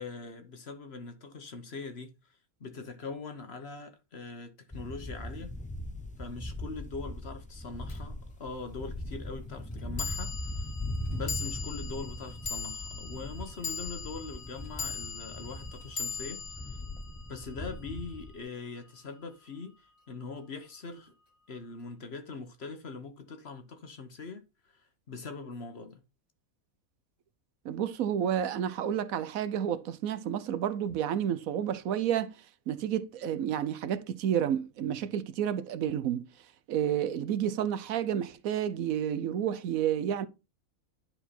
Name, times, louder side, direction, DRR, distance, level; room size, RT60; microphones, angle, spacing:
voice 1, 0.0-5.5 6.2-10.7 11.1-16.4 17.3-21.1 21.5-26.0, left 4 dB, 50° left, 1.3 m, -42 dB
sound 1, 4.7-18.4, left 1 dB, 10° left, 0.4 m, -40 dB
sound 2, 7.9-8.0 10.0-18.4, left 6 dB, 65° left, 2.0 m, -40 dB
voice 2, 27.6-32.3 32.7-36.2 36.7-40.3, right 9 dB, 75° right, 1.1 m, -30 dB
10.5 x 4.6 x 4.2 m
omnidirectional pair, 1.5 m